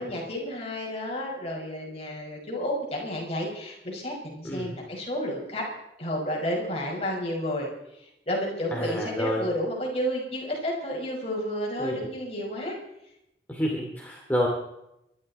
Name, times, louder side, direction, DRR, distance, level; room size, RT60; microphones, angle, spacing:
voice 1, 0.0-5.7 6.0-12.8, equal, 35° left, -1 dB, 5.8 m, -31 dB
voice 2, 8.7-9.5 11.8-12.0 13.5-14.5, equal, 10° left, -1 dB, 2.8 m, -29 dB
26.0 x 12.5 x 4.3 m, 0.82 s
head